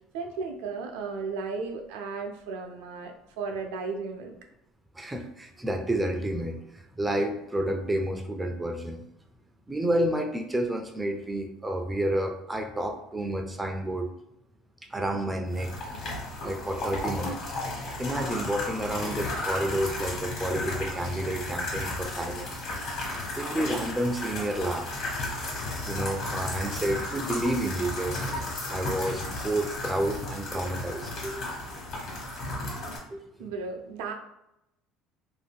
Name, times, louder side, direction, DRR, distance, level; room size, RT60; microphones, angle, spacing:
voice 1, 0.1-4.3 33.4-34.1, right 4 dB, 85° right, 4 dB, 0.5 m, -35 dB
voice 2, 5.0-9.0 9.7-14.1 14.9-15.7 16.4-17.4 18.0-22.5 23.4-24.9 25.8-28.2 28.7-31.5 33.1-33.5, right 1 dB, 10° right, 5 dB, 0.3 m, -30 dB
sound 1, 15.5-33.0, left 2 dB, 55° left, 1.2 m, -34 dB
2.6 x 2.2 x 3.5 m, 0.82 s
supercardioid pair, 110°, 0 cm